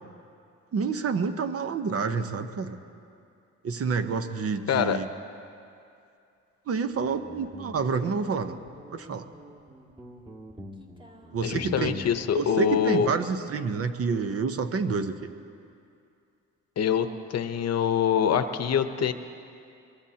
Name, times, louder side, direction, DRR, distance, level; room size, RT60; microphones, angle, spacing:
voice 1, 0.7-2.8 3.6-5.1 6.7-8.6 8.9-9.2 11.3-12.0 12.3-15.1, right 5 dB, 50° right, 8 dB, 0.9 m, -28 dB
voice 2, 4.7-5.0 11.4-13.1 16.8-19.1, left 8 dB, 55° left, 9 dB, 0.9 m, -25 dB
Guitar, 6.9-15.4, equal, 15° right, 1.8 m, -45 dB
22.5 x 22.5 x 2.9 m, 2.5 s
cardioid pair, 90°, 30 cm